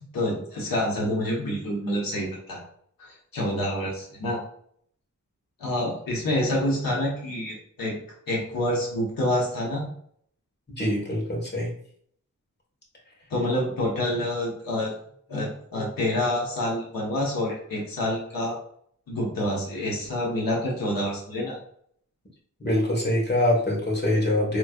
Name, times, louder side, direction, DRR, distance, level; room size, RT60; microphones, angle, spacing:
voice 1, 0.0-2.6 3.0-4.4 5.6-8.0 8.3-9.9 13.3-14.9 15.3-18.6 19.1-21.6, left 1 dB, 90° left, -3 dB, 1.4 m, -27 dB
voice 2, 10.8-11.7 22.6-24.6, left 1 dB, 30° left, -2 dB, 1.6 m, -24 dB
5.0 x 3.2 x 2.5 m, 0.62 s
wide cardioid pair, 95°, 33 cm